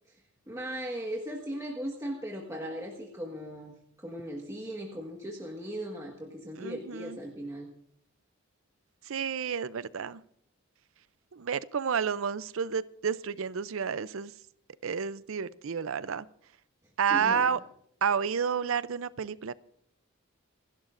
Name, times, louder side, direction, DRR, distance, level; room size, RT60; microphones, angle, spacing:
voice 1, 0.5-7.7 17.1-17.5, equal, 15° right, -1 dB, 1.6 m, -38 dB
voice 2, 6.6-7.2 9.0-10.2 11.3-14.3 14.8-16.3 17.0-17.6 18.0-19.5, right 6 dB, 65° right, 17 dB, 0.5 m, -30 dB
28.5 x 11.5 x 2.6 m, 0.72 s
head